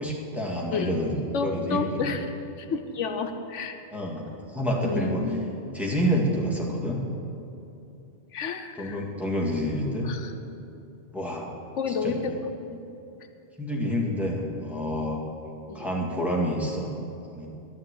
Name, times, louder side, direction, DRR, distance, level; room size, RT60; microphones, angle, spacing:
voice 1, 0.0-2.1 3.9-4.2 4.5-5.2 5.7-7.0 8.8-10.1 11.1-11.5 12.0-12.2 13.6-15.2 15.7-16.9 17.3-17.5, equal, ahead, -3 dB, 2.0 m, -28 dB
voice 2, 1.3-2.2 2.7-3.8 4.8-5.5 8.3-9.0 10.0-10.3 11.8-12.3 12.7-12.8 15.7-15.9, left 5 dB, 85° left, 6 dB, 1.2 m, -30 dB
11.5 x 9.9 x 8.4 m, 2.8 s
omnidirectional pair, 1.2 m